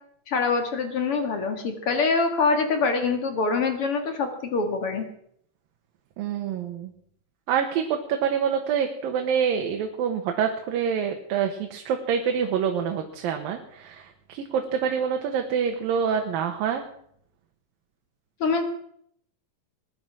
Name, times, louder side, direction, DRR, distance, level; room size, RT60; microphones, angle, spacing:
voice 1, 0.3-5.1 18.4-18.6, left 4 dB, 45° left, 6 dB, 2.4 m, -24 dB
voice 2, 6.2-6.9 7.5-16.8, right 7 dB, 80° right, 4 dB, 3.0 m, -26 dB
21.0 x 10.5 x 6.2 m, 0.67 s
omnidirectional pair, 4.1 m